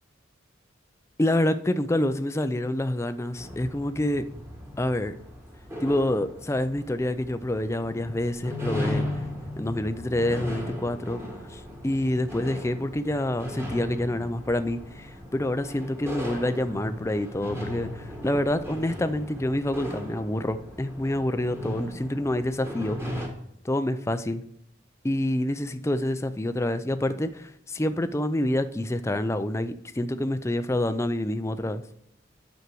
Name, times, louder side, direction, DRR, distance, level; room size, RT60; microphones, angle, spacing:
voice 1, 1.2-4.2 4.8-5.1 5.8-9.0 9.6-11.2 11.5-23.0 23.6-24.4 25.0-31.8, left 1 dB, 15° left, 10 dB, 0.4 m, -27 dB
sound 1, 3.4-23.3, left 1 dB, 15° right, 1.6 m, -37 dB
9.6 x 6.4 x 4.6 m, 0.74 s
head